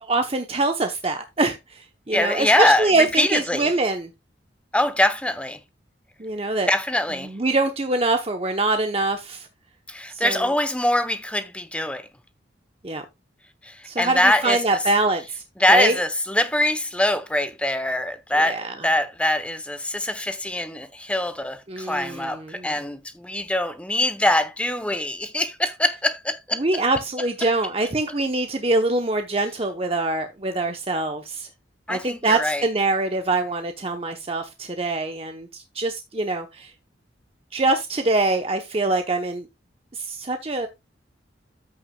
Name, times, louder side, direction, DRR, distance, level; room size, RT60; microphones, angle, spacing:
voice 1, 0.0-4.1 6.2-6.7 7.2-9.5 10.2-10.5 12.8-13.0 13.8-15.4 15.7-16.0 18.4-18.7 21.7-22.7 26.6-31.5 31.9-36.7 37.5-39.5 39.9-40.7, right 2 dB, 30° right, 0.8 m, -24 dB
voice 2, 2.1-3.7 4.7-5.6 6.7-7.3 9.9-12.1 13.6-14.6 15.6-26.6 27.4-27.5 31.9-32.6, left 1 dB, 5° left, 0.8 m, -23 dB
14.0 x 6.0 x 2.3 m
head